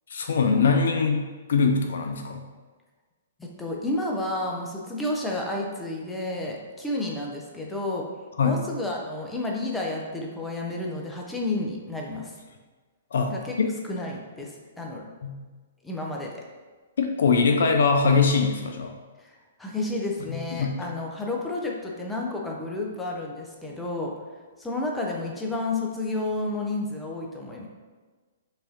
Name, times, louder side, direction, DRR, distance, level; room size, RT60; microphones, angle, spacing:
voice 1, 0.1-2.4 8.4-8.6 13.1-13.7 15.2-15.4 17.0-18.9 20.3-20.7, left 5 dB, 65° left, 4 dB, 0.4 m, -22 dB
voice 2, 3.4-8.1 8.4-12.3 13.3-13.5 13.9-15.0 15.8-16.3 19.2-24.1 24.6-27.7, left 2 dB, 5° left, -1 dB, 0.6 m, -31 dB
4.7 x 2.6 x 2.7 m, 1.4 s
figure-of-eight pair, 120°, 0 cm